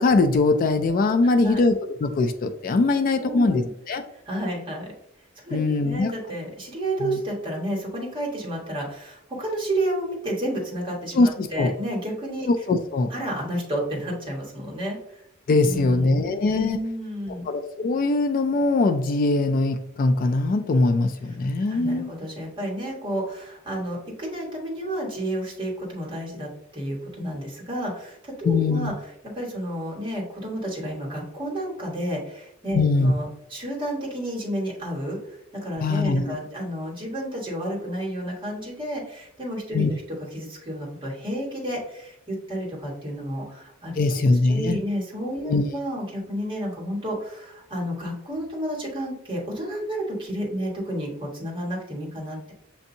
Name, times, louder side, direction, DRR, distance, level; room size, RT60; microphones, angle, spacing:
voice 1, 0.0-4.0 5.5-6.1 7.0-7.2 11.1-11.7 12.5-13.1 15.5-16.8 17.5-22.1 28.4-28.9 32.7-33.1 35.8-36.4 39.7-39.9 44.0-44.8 45.4-45.7, left 3 dB, 45° left, 8 dB, 0.3 m, -22 dB
voice 2, 1.2-1.6 2.9-3.7 4.3-4.9 5.4-12.5 13.1-15.0 15.6-17.4 21.7-28.9 29.3-35.2 35.6-40.0 40.3-44.2 44.5-52.5, right 1 dB, 25° right, -2 dB, 1.4 m, -31 dB
7.0 x 2.6 x 2.7 m, 0.75 s
head